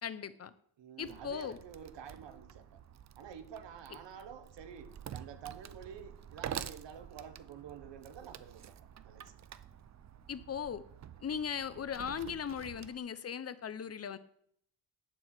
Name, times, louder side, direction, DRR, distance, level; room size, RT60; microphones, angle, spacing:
voice 1, 0.0-0.5 1.0-1.6 10.3-10.8 11.2-14.2, left 7 dB, 35° left, 0.7 m, -38 dB
voice 2, 0.8-2.8 3.2-8.8 9.0-9.4, right 7 dB, 75° right, 1.3 m, -49 dB
Wood, 1.0-13.0, right 9 dB, 40° right, 0.5 m, -48 dB
10.5 x 4.6 x 7.5 m
cardioid pair, 120°, 44 cm